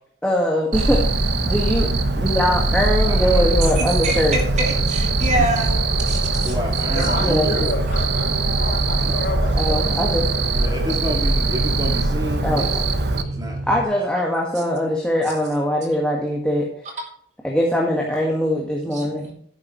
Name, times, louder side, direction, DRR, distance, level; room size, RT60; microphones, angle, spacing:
voice 1, 0.2-1.9 2.2-4.4 7.2-7.5 9.6-10.2 12.4-12.9 13.7-16.7 17.4-19.3, left 1 dB, 5° left, -2 dB, 1.7 m, -22 dB
Cricket, 0.7-13.2, right 2 dB, 60° right, 1.1 m, -21 dB
sound 1, 0.8-13.8, right 2 dB, 85° right, 3.0 m, -30 dB
voice 2, 3.1-3.5 6.4-7.7 9.0-9.2 10.6-12.8 13.1-13.6, equal, 20° right, 0 dB, 2.2 m, -29 dB
voice 3, 3.8-5.8 6.1-6.5 18.9-19.3, right 2 dB, 35° right, 0 dB, 3.0 m, -25 dB
voice 4, 6.9-9.8, left 2 dB, 55° left, 0 dB, 4.4 m, -30 dB
12.0 x 10.0 x 3.2 m, 0.65 s
head